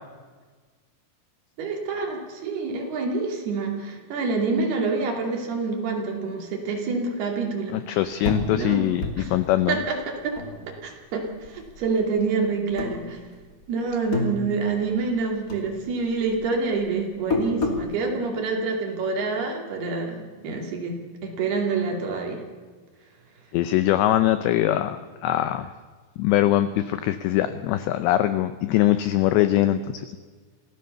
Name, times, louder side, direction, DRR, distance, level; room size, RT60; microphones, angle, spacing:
voice 1, 1.6-7.8 8.5-8.9 9.2-9.3 9.7-10.4 10.8-13.2 13.7-22.4, right 4 dB, 55° right, 1 dB, 4.2 m, -27 dB
voice 2, 7.7-9.8 23.5-25.7 26.2-30.2, left 13 dB, 85° left, 11 dB, 2.5 m, -22 dB
sound 1, 8.2-11.1 11.4-12.3 12.7-13.6 13.9-15.2 15.5-17.9, left 2 dB, 30° left, 1.6 m, -30 dB
25.5 x 16.5 x 6.9 m, 1.4 s
omnidirectional pair, 6.0 m